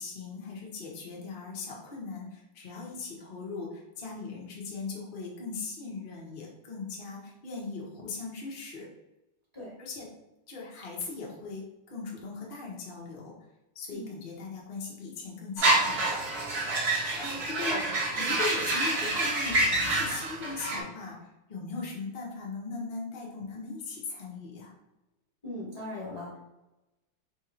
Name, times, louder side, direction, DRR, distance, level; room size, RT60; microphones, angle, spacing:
voice 1, 0.0-8.9 9.8-10.1 10.5-13.3 13.7-16.2 16.8-17.8 18.1-24.7, left 4 dB, 55° left, -3 dB, 0.5 m, -39 dB
sound 1, 15.6-20.8, right 2 dB, 60° right, 0.6 m, -27 dB
voice 2, 25.4-26.4, left 1 dB, 20° left, -7 dB, 0.9 m, -39 dB
3.4 x 2.6 x 4.3 m, 0.95 s
omnidirectional pair, 2.4 m